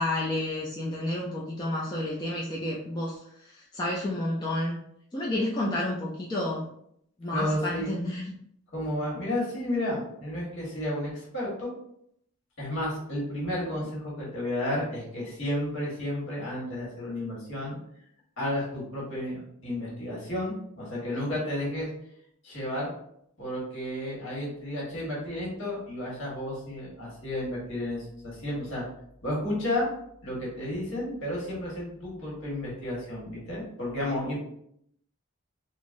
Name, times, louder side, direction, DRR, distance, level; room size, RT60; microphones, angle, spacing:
voice 1, 0.0-3.2 3.7-4.8 5.1-6.6 7.2-8.3, left 1 dB, 20° left, -5 dB, 0.3 m, -30 dB
voice 2, 7.3-7.9 8.7-11.7 12.6-17.8 18.4-21.9 22.4-22.9 23.4-28.8 29.2-29.9 30.2-34.4, left 1 dB, 60° left, -5 dB, 1.4 m, -32 dB
3.8 x 2.0 x 2.5 m, 0.71 s
head